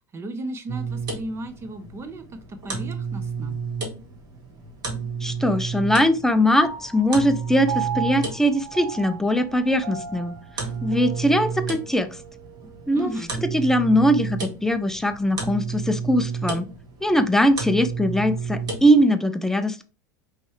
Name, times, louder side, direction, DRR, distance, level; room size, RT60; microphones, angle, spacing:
voice 1, 0.1-3.6 12.9-13.3, right 1 dB, 25° right, 0.8 m, -35 dB
sound 1, 0.7-19.0, right 5 dB, 45° right, 1.6 m, -32 dB
voice 2, 5.2-10.4 10.8-12.1 12.9-13.1 13.4-16.7 17.0-19.8, equal, 5° left, 0.5 m, -21 dB
Piano, 6.6-13.3, right 8 dB, 65° right, 0.9 m, -36 dB
5.2 x 3.2 x 3.1 m
supercardioid pair, 110°, 10 cm